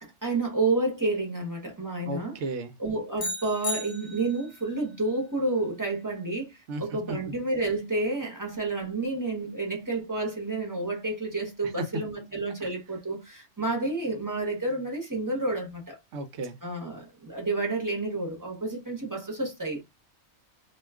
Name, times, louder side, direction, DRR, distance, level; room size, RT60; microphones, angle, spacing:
voice 1, 0.0-2.4 2.8-6.5 6.8-16.0 16.6-19.8, right 2 dB, 20° right, 0.8 m, -30 dB
voice 2, 2.1-2.7 6.7-7.2 11.6-11.7 12.6-12.7 16.1-16.6, right 3 dB, 65° right, 0.8 m, -35 dB
sound 1, 3.2-4.6, left 2 dB, 85° left, 1.0 m, -34 dB
2.3 x 2.3 x 3.4 m
omnidirectional pair, 1.4 m